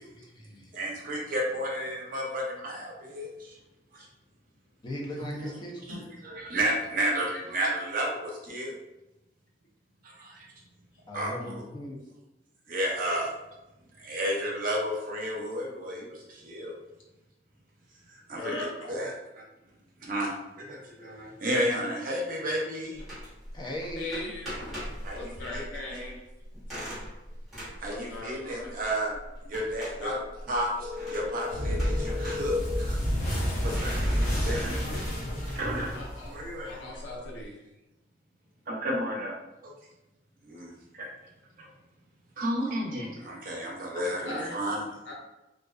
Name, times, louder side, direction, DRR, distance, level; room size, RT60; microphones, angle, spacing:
voice 1, 0.0-0.7 4.8-5.9 11.1-12.0 23.5-24.3 36.6-37.0 43.9-44.5 44.8-45.0, equal, 25° left, -1 dB, 0.4 m, -39 dB
voice 2, 0.5-3.6 3.9-4.1 5.2-5.5 5.9-8.7 10.0-10.5 11.1-11.5 12.7-13.3 14.0-16.7 18.3-18.6 18.9-19.1 20.0-23.0 25.0-25.6 25.9-26.0 27.8-29.2 29.4-30.2 30.5-33.0 33.6-34.9 35.5-36.7 38.7-39.3 39.6-39.7 40.4-41.1 41.6-41.7 42.4-44.8, equal, 50° right, -2 dB, 0.6 m, -32 dB
voice 3, 18.4-19.0 24.0-24.5 25.1-26.2 27.9-28.7 30.0-30.2 35.9-37.6 44.2-44.6 45.1-45.2, left 2 dB, 90° left, -2 dB, 0.7 m, -39 dB
sound 1, 23.0-37.5, equal, ahead, 0.9 m, -42 dB
sound 2, 31.5-36.6, equal, 45° left, 0.8 m, -29 dB
2.4 x 2.2 x 2.3 m, 0.95 s
head